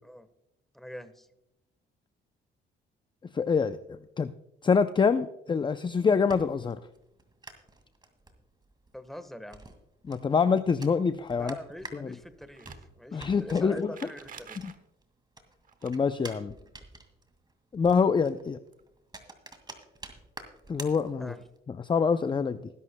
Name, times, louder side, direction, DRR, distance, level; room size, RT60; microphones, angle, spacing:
voice 1, 0.7-1.3 8.9-9.7 11.4-12.7 13.0-14.6 21.2-21.4, left 1 dB, ahead, 11 dB, 1.2 m, -43 dB
voice 2, 3.3-4.3 4.6-6.8 10.0-11.6 12.0-12.1 13.1-13.9 14.6-14.7 15.8-16.5 17.7-18.6 20.7-21.3 21.7-22.7, left 5 dB, 25° left, 11 dB, 0.5 m, -26 dB
sound 1, 5.9-15.0 15.3-21.6, right 2 dB, 20° right, 2.1 m, -49 dB
sound 2, 12.5-12.9 13.9-14.8 15.6-15.9 18.4-18.5 18.7-18.8 19.9-20.0, right 7 dB, 45° right, 1.1 m, -47 dB
20.0 x 11.0 x 2.2 m, 0.86 s
cardioid pair, 90°, 20 cm